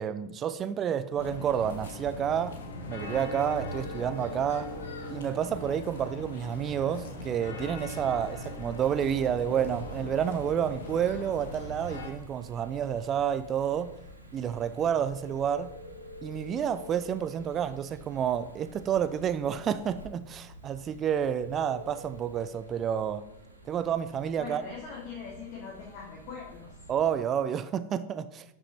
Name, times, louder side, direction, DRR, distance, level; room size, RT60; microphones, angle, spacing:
voice 1, 0.0-2.6 2.9-4.7 5.1-13.9 14.3-15.7 16.2-23.2 23.7-24.6 26.9-28.4, right 8 dB, 25° right, 0.6 m, -29 dB
sound 1, 1.2-12.1, left 1 dB, 65° left, 1.6 m, -40 dB
Telephone, 3.1-22.5, left 2 dB, 80° left, 1.2 m, -48 dB
sound 2, 8.1-27.2, right 2 dB, 85° right, 1.6 m, -53 dB
voice 2, 24.4-26.8, left 6 dB, 45° left, 2.7 m, -42 dB
11.0 x 6.3 x 4.1 m
figure-of-eight pair, 90°, 0 cm